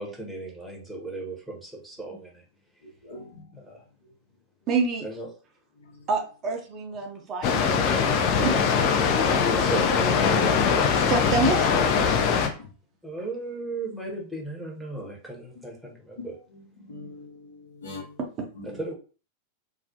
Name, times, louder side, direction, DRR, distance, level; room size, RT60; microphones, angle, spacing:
voice 1, 0.0-2.4 3.5-3.8 5.0-5.3 9.1-10.5 13.0-16.4 18.6-18.9, right 1 dB, 5° right, 0.8 m, -35 dB
voice 2, 3.0-3.4 5.9-6.0 12.5-12.6 16.8-18.1 18.6-18.8, left 2 dB, 65° left, 0.8 m, -42 dB
voice 3, 4.7-5.0 6.1-7.7 8.4-9.0 11.1-11.7 18.4-18.5, right 4 dB, 30° right, 0.6 m, -27 dB
Water, 7.4-12.5, left 6 dB, 40° left, 0.4 m, -22 dB
2.3 x 2.0 x 2.7 m
figure-of-eight pair, 90°, 0 cm